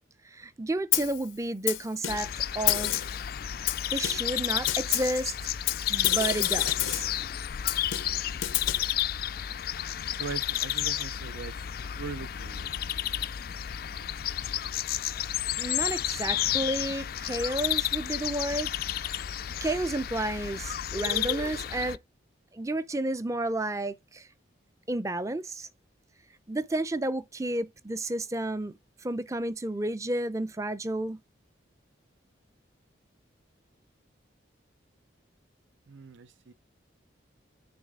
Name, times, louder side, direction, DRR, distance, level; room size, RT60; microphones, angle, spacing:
voice 1, 0.2-3.0 3.9-5.3 5.9-7.1 15.6-18.7 19.1-19.2 19.6-22.0 22.5-24.3 24.9-25.7 26.5-31.2, right 1 dB, 15° right, 0.5 m, -31 dB
Snare drum, 0.9-1.2 1.7-2.4 2.7-3.2 3.7-4.4 4.7-5.2 5.7-7.2 7.7-8.9, left 14 dB, 90° left, 0.6 m, -30 dB
sound 1, 2.1-22.0, left 11 dB, 50° left, 0.3 m, -31 dB
voice 2, 10.1-11.6 12.0-12.7 35.9-36.5, right 5 dB, 75° right, 0.6 m, -40 dB
9.6 x 4.1 x 3.7 m
head